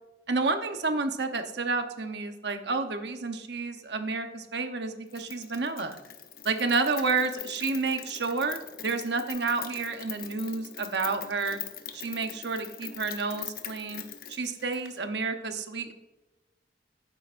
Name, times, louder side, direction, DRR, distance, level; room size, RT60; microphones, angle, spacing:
voice 1, 0.3-6.0 6.4-11.6 11.9-14.0 14.3-15.9, right 4 dB, 80° right, 7 dB, 0.9 m, -30 dB
Rain, 5.1-15.0, left 9 dB, 55° left, 0.9 m, -42 dB
11.5 x 9.8 x 2.6 m, 1.1 s
head